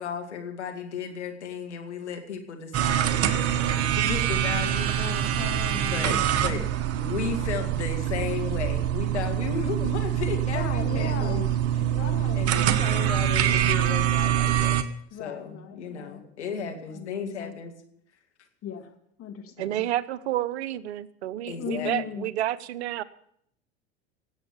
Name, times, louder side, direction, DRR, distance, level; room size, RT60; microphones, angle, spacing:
voice 1, 0.0-5.5 5.8-6.6 6.9-11.8 12.4-14.8 15.2-17.7 19.7-19.8 21.5-21.9, left 6 dB, 85° left, 4 dB, 2.3 m, -35 dB
sound 1, 2.7-14.8, right 11 dB, 45° right, 1.3 m, -25 dB
voice 2, 5.3-6.7 10.5-11.5 11.8-12.5 15.1-16.3 16.6-17.6 18.6-18.9 19.2-19.9 21.6-22.3, left 9 dB, 40° left, 4 dB, 2.9 m, -38 dB
voice 3, 19.6-23.0, right 13 dB, 75° right, 17 dB, 0.8 m, -30 dB
18.0 x 8.2 x 7.3 m, 0.70 s
hypercardioid pair, 80°, 33 cm